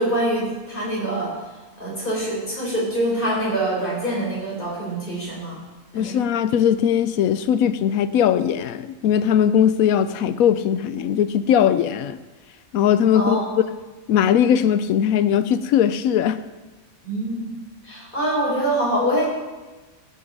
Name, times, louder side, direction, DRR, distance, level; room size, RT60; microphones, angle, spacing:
voice 1, 0.0-1.3 1.8-5.6 5.9-6.2 13.1-13.4 17.0-17.5 17.8-19.3, right 1 dB, 35° left, -4 dB, 4.2 m, -24 dB
voice 2, 5.9-12.2 12.7-13.4 14.1-16.4, left 9 dB, 80° left, 13 dB, 1.0 m, -19 dB
16.0 x 6.4 x 5.4 m, 1.2 s
omnidirectional pair, 1.5 m